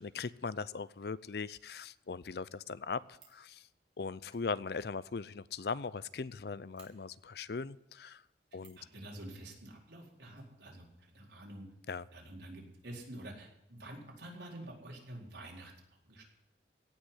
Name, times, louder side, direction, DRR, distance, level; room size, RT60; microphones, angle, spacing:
voice 1, 0.0-3.6 4.0-8.2 8.5-8.8 11.9-12.1, left 4 dB, 60° left, 18 dB, 0.5 m, -39 dB
Fire, 3.1-3.5 4.2-6.0 6.3-6.4 6.7-6.9 8.5-8.9 10.3-11.2 11.5-11.6 11.8-11.9, right 6 dB, 30° right, 3.8 m, -64 dB
voice 2, 8.8-11.7 12.1-16.2, right 1 dB, 75° right, -2 dB, 4.5 m, -48 dB
17.5 x 6.4 x 9.7 m, 0.81 s
head